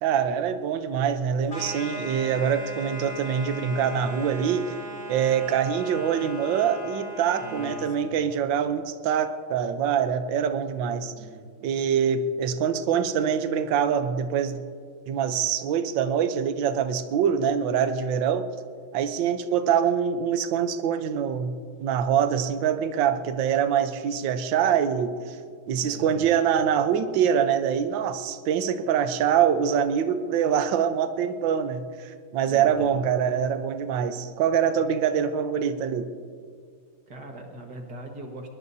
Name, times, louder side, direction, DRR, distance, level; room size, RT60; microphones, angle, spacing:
voice 1, 0.0-4.7 5.1-11.1 11.6-14.6 15.1-18.5 18.9-21.5 21.8-25.4 25.7-36.1, right 8 dB, 65° right, 9 dB, 1.4 m, -24 dB
sound 1, 1.5-8.0, left 1 dB, 25° left, 3.4 m, -38 dB
voice 2, 7.4-8.2 11.0-11.7 25.8-26.4 32.4-33.1 37.1-38.5, right 1 dB, 50° right, 2 dB, 2.1 m, -41 dB
21.5 x 20.5 x 2.7 m, 2.1 s
omnidirectional pair, 2.3 m